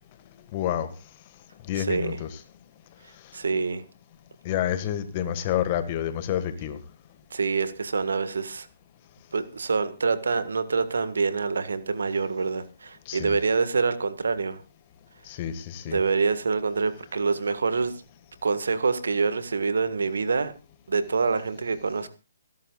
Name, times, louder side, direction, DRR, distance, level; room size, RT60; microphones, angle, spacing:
voice 1, 0.5-0.9 1.6-2.3 4.4-6.8 13.1-13.3 15.3-16.0, left 10 dB, 35° left, 10 dB, 1.7 m, -28 dB
voice 2, 1.8-2.2 3.3-3.8 7.3-8.7 9.3-14.6 15.9-17.9 18.4-20.5 20.9-22.1, right 4 dB, 70° right, 12 dB, 1.7 m, -26 dB
27.0 x 11.5 x 2.4 m, 0.31 s
figure-of-eight pair, 135°, 0 cm